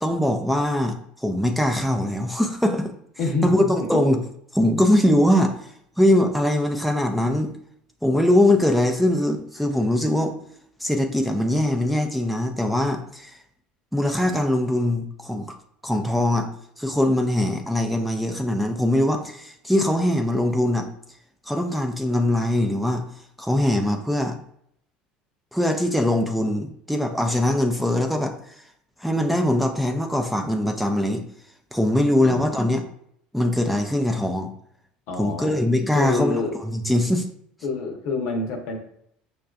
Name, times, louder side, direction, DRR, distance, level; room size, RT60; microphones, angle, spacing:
voice 1, 0.0-2.9 3.4-4.2 4.5-7.5 8.0-10.3 10.8-13.4 13.9-15.5 15.8-16.5 16.8-20.9 21.5-23.0 23.4-24.4 25.5-28.5 29.0-31.2 31.7-32.8 33.3-34.5 35.2-37.3, left 1 dB, ahead, 3 dB, 0.5 m, -22 dB
voice 2, 3.2-3.5 32.2-32.5 35.1-35.6 35.9-36.6 37.6-38.8, left 3 dB, 65° left, 2 dB, 0.8 m, -27 dB
5.6 x 2.4 x 2.3 m, 0.70 s
hypercardioid pair, 70°, 4 cm